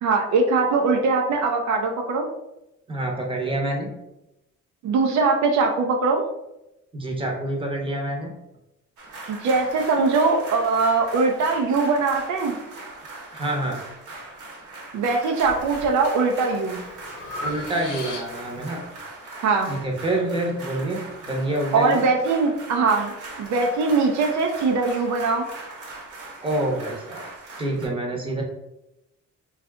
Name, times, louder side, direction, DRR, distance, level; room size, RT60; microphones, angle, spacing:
voice 1, 0.0-2.3 4.8-6.2 9.3-12.5 14.9-16.8 19.4-19.7 21.7-23.1 23.4-25.5, right 4 dB, 70° right, 1 dB, 0.5 m, -21 dB
voice 2, 2.9-3.9 6.9-8.3 13.3-13.8 17.4-18.8 19.7-21.0 21.2-22.0 26.4-27.2 27.6-28.4, right 1 dB, 15° right, -1 dB, 0.8 m, -27 dB
sound 1, 9.0-27.9, right 2 dB, 85° right, 1.0 m, -40 dB
Breathing, 15.4-15.9 16.4-18.6, left 2 dB, 90° left, 0.7 m, -36 dB
2.6 x 2.4 x 3.3 m, 0.89 s
cardioid pair, 90°, 30 cm